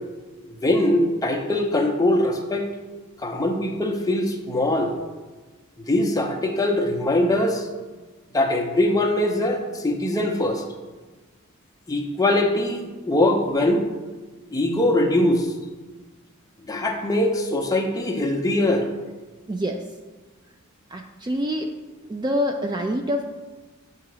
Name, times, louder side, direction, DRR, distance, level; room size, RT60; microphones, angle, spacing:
voice 1, 0.5-2.7 3.2-4.9 5.9-7.7 8.3-10.6 11.9-13.8 14.5-15.5 16.7-18.9, left 1 dB, 15° left, 2 dB, 0.6 m, -22 dB
voice 2, 19.5-19.8 20.9-21.7 22.1-23.2, equal, 20° right, 4 dB, 0.3 m, -26 dB
8.0 x 2.8 x 6.1 m, 1.3 s
head